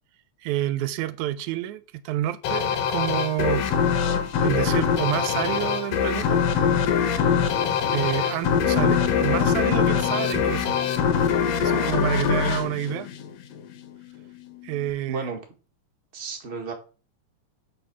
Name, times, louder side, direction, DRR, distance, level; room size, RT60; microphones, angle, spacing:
voice 1, 0.4-3.7 4.4-6.5 7.9-10.8 11.1-11.3 11.6-13.1 14.6-15.3, right 13 dB, 85° right, 2.0 m, -29 dB
sound 1, 2.4-13.7, left 7 dB, 65° left, 1.9 m, -23 dB
sound 2, 8.7-14.9, left 21 dB, 80° left, 1.9 m, -34 dB
voice 2, 11.6-12.0 15.1-15.4 16.1-16.7, right 4 dB, 25° right, 1.6 m, -33 dB
7.7 x 4.5 x 6.1 m
omnidirectional pair, 3.3 m